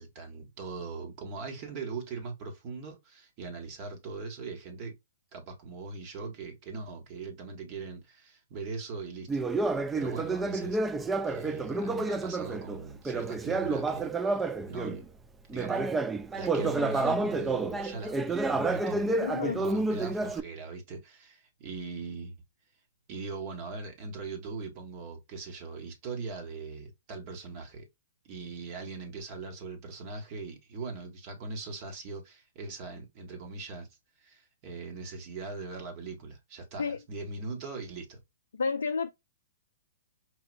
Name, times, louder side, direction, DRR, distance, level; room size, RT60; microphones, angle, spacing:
voice 1, 0.0-5.0 5.3-10.8 11.2-15.1 15.5-15.8 16.3-19.2 19.6-22.4 23.1-27.8 28.2-33.9 34.2-38.2, right 4 dB, 40° right, 1.7 m, -40 dB
Conversation, 9.3-15.0 15.5-20.4, right 3 dB, 10° right, 0.4 m, -30 dB
voice 2, 19.2-19.6 36.8-37.0 38.6-39.1, left 5 dB, 75° left, 0.4 m, -30 dB
4.9 x 2.8 x 2.5 m
hypercardioid pair, 120°, 0 cm